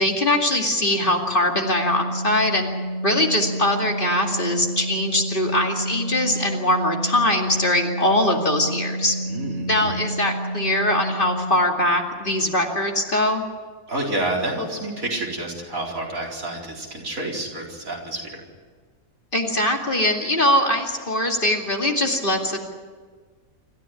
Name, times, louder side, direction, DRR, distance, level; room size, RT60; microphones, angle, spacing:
voice 1, 0.0-2.7 3.0-9.1 9.7-13.5 19.3-22.6, left 1 dB, 35° left, 2 dB, 2.6 m, -22 dB
Organ, 1.2-11.8, right 1 dB, 55° left, 6.0 m, -30 dB
voice 2, 9.3-9.9 13.9-18.4, right 1 dB, 70° right, -2 dB, 4.9 m, -29 dB
26.5 x 14.0 x 9.6 m, 1.5 s
omnidirectional pair, 1.5 m